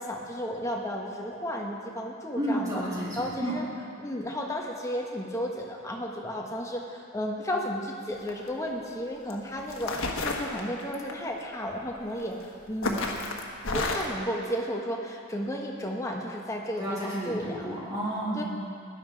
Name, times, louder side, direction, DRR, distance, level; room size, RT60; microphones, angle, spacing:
voice 1, 0.0-2.8 3.2-3.6 4.0-13.0 13.7-17.7 18.3-18.4, equal, 15° left, -1 dB, 1.3 m, -33 dB
voice 2, 2.3-3.6 16.8-18.4, right 1 dB, 15° right, -8 dB, 3.3 m, -31 dB
sound 1, 8.2-8.5 9.3-9.4 9.7-11.1 12.2-12.4 12.8-14.2, left 2 dB, 75° left, 1.4 m, -30 dB
16.5 x 11.0 x 4.7 m, 2.4 s
head